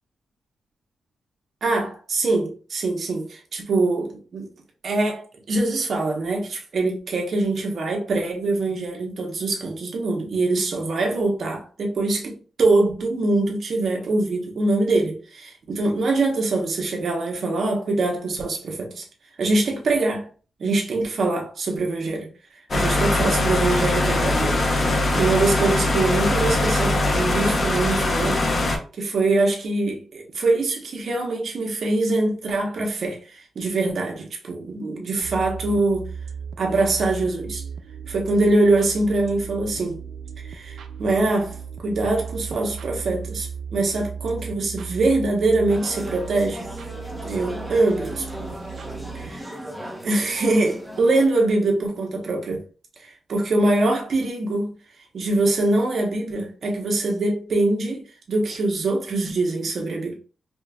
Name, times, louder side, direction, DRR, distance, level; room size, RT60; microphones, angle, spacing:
voice 1, 1.6-4.5 4.8-19.0 19.4-20.3 20.6-22.3 22.7-28.5 29.0-36.1 36.6-37.6 38.1-40.0 40.4-46.7 47.2-48.2 49.1-49.6 50.0-52.6 53.0-54.7 55.1-60.2, right 2 dB, 55° right, 1.1 m, -23 dB
sound 1, 22.7-28.8, left 2 dB, 40° left, 0.8 m, -21 dB
sound 2, 35.2-49.4, right 6 dB, 85° right, 0.4 m, -36 dB
sound 3, 45.7-51.3, equal, ahead, 0.9 m, -36 dB
5.0 x 2.4 x 2.3 m
cardioid pair, 110°, 0 cm